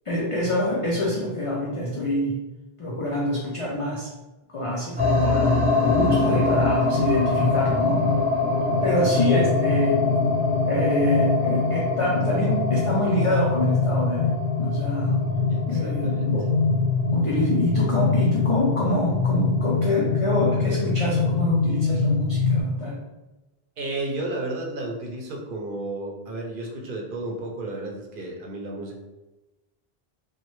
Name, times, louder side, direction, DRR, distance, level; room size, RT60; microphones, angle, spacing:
voice 1, 0.1-2.4 2.8-4.1 4.5-8.0 8.8-10.1 10.7-15.2 15.7-16.5 17.1-23.0, left 1 dB, 45° left, -3 dB, 0.4 m, -26 dB
sound 1, 5.0-22.6, left 3 dB, 5° right, 0.9 m, -23 dB
voice 2, 15.5-16.3 23.8-29.0, right 2 dB, 60° right, 0 dB, 0.7 m, -32 dB
2.9 x 2.1 x 3.0 m, 1.1 s
omnidirectional pair, 1.0 m